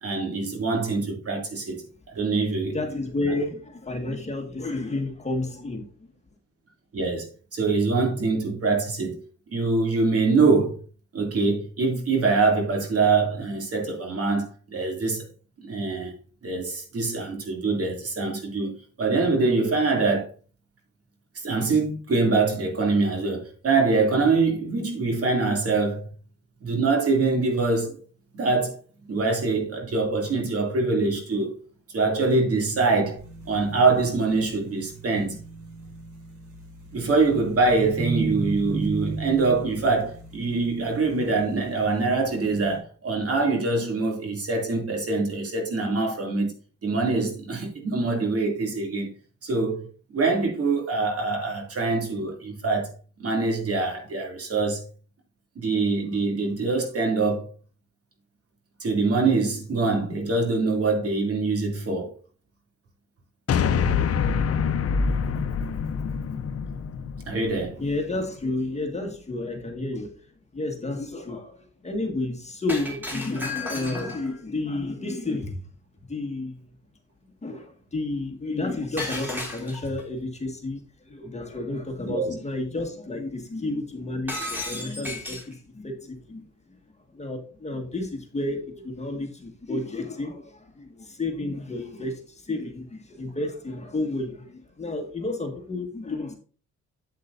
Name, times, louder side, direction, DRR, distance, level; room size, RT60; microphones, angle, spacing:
voice 1, 0.0-1.9 2.1-2.8 6.9-9.2 9.5-10.8 11.1-15.2 15.6-16.1 16.4-20.3 21.3-26.1 26.6-28.0 28.3-28.8 29.1-31.6 31.9-35.4 36.9-46.5 46.8-49.1 49.4-49.9 50.1-52.9 53.2-54.8 55.6-57.5 58.8-62.1 67.3-67.8 82.0-82.3, right 3 dB, 50° right, 2.6 m, -24 dB
voice 2, 2.7-6.1 67.8-70.1 70.5-75.6 76.1-76.7 77.4-86.4 86.7-86.8 87.1-96.3, left 2 dB, 20° left, 1.7 m, -31 dB
sound 1, 33.2-42.8, right 3 dB, 75° right, 3.1 m, -36 dB
sound 2, 63.5-67.9, left 6 dB, 50° left, 0.8 m, -25 dB
Shatter, 72.7-74.4 79.0-80.0 84.3-85.5, left 2 dB, 5° right, 3.0 m, -33 dB
8.3 x 8.1 x 2.6 m
cardioid pair, 90°, 30 cm